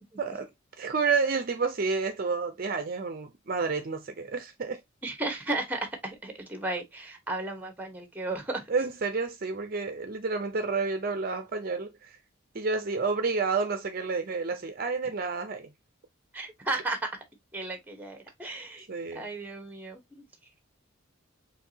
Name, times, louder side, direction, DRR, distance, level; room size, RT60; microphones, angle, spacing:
voice 1, 0.2-0.5 0.8-4.8 8.7-12.2 12.5-15.7 18.9-19.3, right 4 dB, 45° right, 0.6 m, -30 dB
voice 2, 5.0-8.7 16.3-17.1 17.5-18.9 19.1-20.2, right 2 dB, 10° right, 1.0 m, -34 dB
4.6 x 3.1 x 2.7 m
head